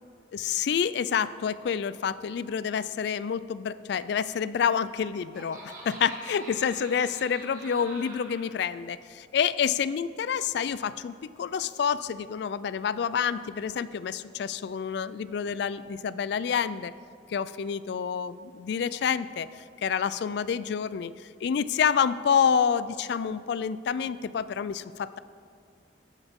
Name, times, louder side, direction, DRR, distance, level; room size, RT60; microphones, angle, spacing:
voice 1, 0.3-16.9 17.3-21.1 21.4-25.2, left 7 dB, 60° left, 16 dB, 0.3 m, -28 dB
Laughter, 4.9-8.5, right 2 dB, 45° right, 1.8 m, -45 dB
15.5 x 8.0 x 3.6 m, 2.2 s
head